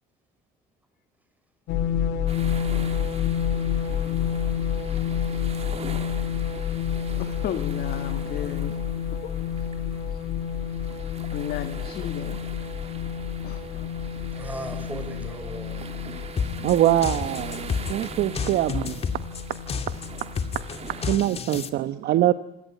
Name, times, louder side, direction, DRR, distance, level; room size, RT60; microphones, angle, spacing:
sound 1, 1.7-21.2, left 8 dB, 85° left, 2.8 m, -29 dB
sound 2, 2.3-21.2, right 6 dB, 40° right, 2.7 m, -42 dB
voice 1, 7.2-8.8 9.2-9.3 10.1-10.2 11.3-12.4 13.4-13.9, left 10 dB, 65° left, 9 dB, 1.8 m, -34 dB
voice 2, 14.3-15.9, right 2 dB, 10° right, 6 dB, 6.3 m, -38 dB
sound 3, 16.4-21.7, left 5 dB, 35° left, 2.3 m, -30 dB
voice 3, 16.6-19.0 21.0-22.3, right 13 dB, 70° right, 11 dB, 1.0 m, -23 dB
27.0 x 17.5 x 9.2 m, 0.89 s
cardioid pair, 110°, 17 cm